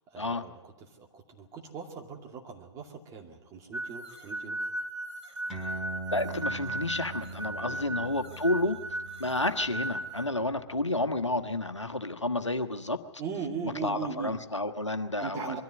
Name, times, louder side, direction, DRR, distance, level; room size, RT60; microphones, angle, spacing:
voice 1, 0.1-0.6 0.9-4.6 7.6-7.8 13.2-14.4 15.2-15.6, right 6 dB, 20° right, 1 dB, 2.4 m, -39 dB
sound 1, 3.7-10.3, right 1 dB, 75° right, 3.0 m, -36 dB
sound 2, 5.5-12.4, right 2 dB, 5° right, 4.1 m, -43 dB
voice 2, 6.1-8.8 9.2-13.0 13.6-15.6, left 2 dB, 85° left, 8 dB, 1.3 m, -30 dB
23.0 x 14.0 x 9.4 m, 1.1 s
figure-of-eight pair, 120°, 15 cm